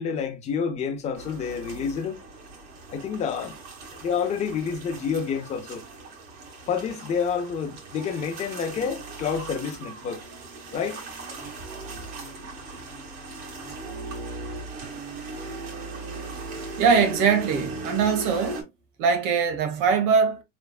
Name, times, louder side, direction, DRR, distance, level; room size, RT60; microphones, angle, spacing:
voice 1, 0.0-2.2 2.9-3.6 4.0-5.8 6.7-10.2 10.7-11.0, left 6 dB, 15° left, 0.4 m, -28 dB
sound 1, 1.1-18.6, right 3 dB, 55° right, 1.7 m, -38 dB
voice 2, 16.8-18.7 19.0-20.4, right 6 dB, 90° right, 1.3 m, -22 dB
4.4 x 3.4 x 2.3 m
cardioid pair, 180°, 44 cm